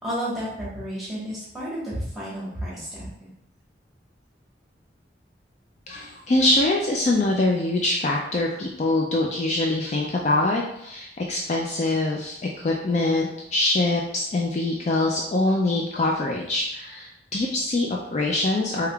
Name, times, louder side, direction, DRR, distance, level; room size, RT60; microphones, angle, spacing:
voice 1, 0.0-3.3, equal, ahead, -8 dB, 1.2 m, -32 dB
voice 2, 5.9-18.9, left 2 dB, 40° left, -1 dB, 0.3 m, -24 dB
3.4 x 3.3 x 2.3 m, 0.75 s
head